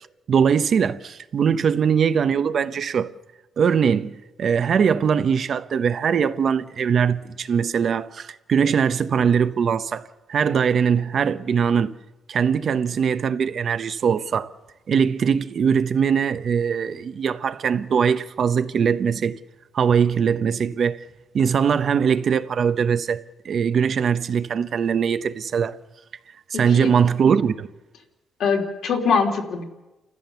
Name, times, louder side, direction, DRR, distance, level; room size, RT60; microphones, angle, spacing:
voice 1, 0.3-3.1 3.6-11.9 12.3-14.5 14.9-19.4 19.7-21.0 21.3-25.8 26.5-27.7, right 7 dB, 50° right, 0.8 m, -21 dB
voice 2, 26.5-26.9 28.4-29.6, left 5 dB, 70° left, 3.0 m, -23 dB
29.5 x 14.5 x 6.9 m
cardioid pair, 150°, 0 cm